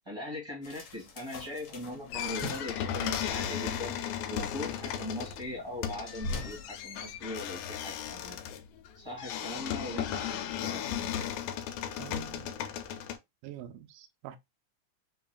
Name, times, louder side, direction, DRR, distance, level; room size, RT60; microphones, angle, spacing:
voice 1, 0.0-3.9 4.3-8.4 8.9-11.3, left 1 dB, 30° right, 0.5 m, -40 dB
sound 1, 0.6-6.7, left 2 dB, 70° left, 1.4 m, -43 dB
sound 2, 2.1-13.2, left 9 dB, 85° left, 2.3 m, -36 dB
voice 2, 12.0-12.5 13.4-14.4, right 12 dB, 85° right, 2.2 m, -45 dB
5.5 x 2.5 x 2.3 m
omnidirectional pair, 3.9 m